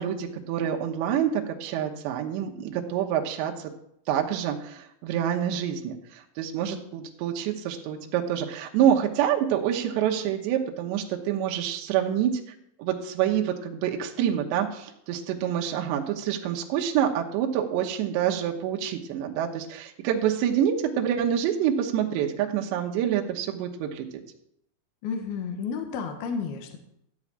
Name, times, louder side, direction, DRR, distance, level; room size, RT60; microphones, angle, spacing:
voice 1, 0.0-3.7 4.1-12.3 12.8-24.1, right 9 dB, 75° right, 2 dB, 3.1 m, -27 dB
voice 2, 25.0-26.8, left 5 dB, 70° left, 4 dB, 2.6 m, -31 dB
13.5 x 4.8 x 8.6 m, 0.76 s
omnidirectional pair, 5.5 m